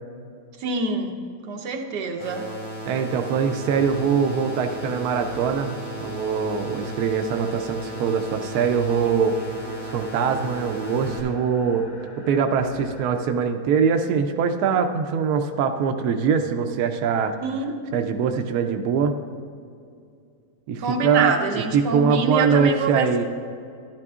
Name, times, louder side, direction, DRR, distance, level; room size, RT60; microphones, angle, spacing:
voice 1, 0.6-1.1 1.5-2.4 17.4-17.8 20.8-23.3, right 4 dB, 90° right, 3 dB, 1.5 m, -26 dB
sound 1, 2.2-11.2, right 1 dB, 50° left, 2.2 m, -35 dB
voice 2, 2.8-9.4 9.9-11.8 12.3-17.4 17.9-19.1 20.7-23.3, right 6 dB, 75° right, 6 dB, 1.1 m, -23 dB
sound 2, 3.7-13.2, equal, 30° left, 1.3 m, -42 dB
13.5 x 11.0 x 2.4 m, 2.4 s
omnidirectional pair, 1.7 m